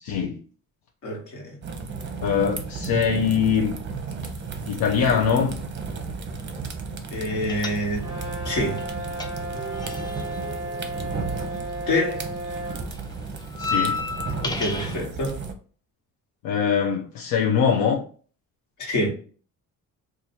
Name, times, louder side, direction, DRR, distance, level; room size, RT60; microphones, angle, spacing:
voice 1, 0.0-0.4 2.2-3.8 4.7-5.5 13.6-14.0 16.4-18.0, left 7 dB, 85° left, 0.6 m, -22 dB
voice 2, 1.0-1.6 7.1-8.0 8.4-8.8 11.9-12.2 14.4-15.4 18.8-19.1, left 1 dB, 60° left, 1.5 m, -26 dB
sound 1, 1.6-15.5, right 4 dB, 35° right, 0.6 m, -34 dB
sound 2, 7.5-8.3 8.5-11.9 12.2-15.0, left 4 dB, 15° left, 0.3 m, -32 dB
Brass instrument, 8.0-12.9, right 1 dB, 10° right, 1.0 m, -34 dB
2.7 x 2.5 x 4.2 m
cardioid pair, 130°, 34 cm